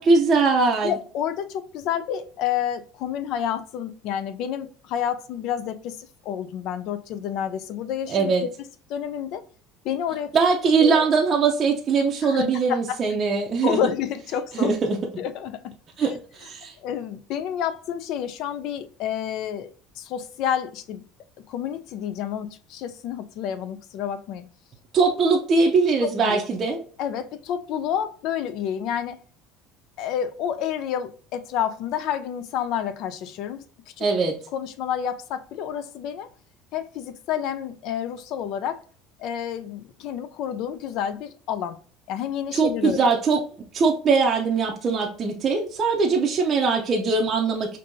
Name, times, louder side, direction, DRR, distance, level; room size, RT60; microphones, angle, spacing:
voice 1, 0.0-0.9 8.1-8.4 10.3-13.8 14.5-15.0 16.0-16.1 16.4-16.7 24.9-26.8 34.0-34.4 42.5-43.4 43.7-47.8, right 4 dB, 30° right, 0.6 m, -21 dB
voice 2, 0.8-9.4 9.8-10.3 10.8-11.1 12.2-12.4 12.7-13.0 13.6-14.8 15.2-15.7 16.0-16.1 16.8-19.7 20.0-21.0 21.5-24.5 26.0-26.4 27.0-29.2 30.0-33.6 34.0-34.1 34.5-36.3 36.7-38.8 39.2-41.8 42.1-43.0, left 9 dB, 60° left, 0.4 m, -29 dB
5.2 x 2.7 x 2.6 m
cardioid pair, 145°, 0 cm